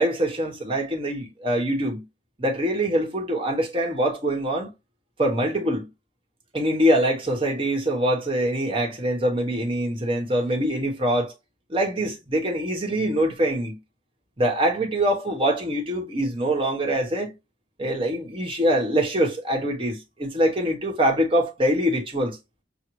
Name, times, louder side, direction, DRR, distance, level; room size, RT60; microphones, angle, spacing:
voice 1, 0.0-2.1 2.4-4.7 5.2-5.9 6.5-11.3 11.7-13.8 14.4-17.3 17.8-22.4, right 1 dB, 30° right, 1.0 m, -24 dB
6.1 x 2.1 x 3.0 m
head